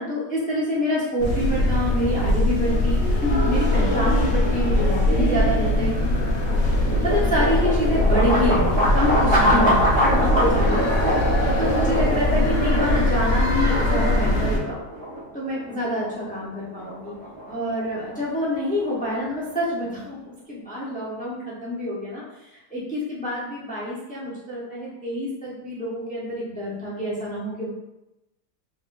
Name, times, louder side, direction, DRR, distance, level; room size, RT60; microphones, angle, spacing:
voice 1, 0.0-6.0 6.8-9.8 10.1-10.8 11.6-14.8 15.3-17.1 17.5-27.7, left 1 dB, 10° left, -6 dB, 0.5 m, -27 dB
sound 1, 1.2-14.6, left 1 dB, 55° left, 1.0 m, -21 dB
sound 2, 6.2-19.9, equal, 40° right, 1.1 m, -26 dB
3.7 x 3.5 x 2.5 m, 0.92 s
omnidirectional pair, 1.8 m